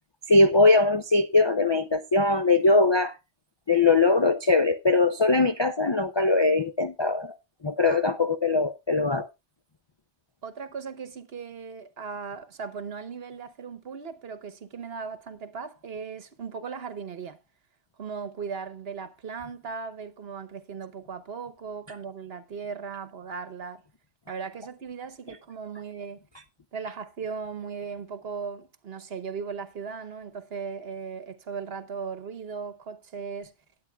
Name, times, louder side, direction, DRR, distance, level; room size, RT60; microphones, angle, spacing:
voice 1, 0.3-3.2 3.7-7.4 7.6-9.3, left 3 dB, 40° left, 0.4 m, -21 dB
voice 2, 10.4-17.4 18.0-23.8 24.3-26.2 26.7-33.5, right 5 dB, 60° right, 1.2 m, -37 dB
18.5 x 8.5 x 2.3 m
omnidirectional pair, 1.2 m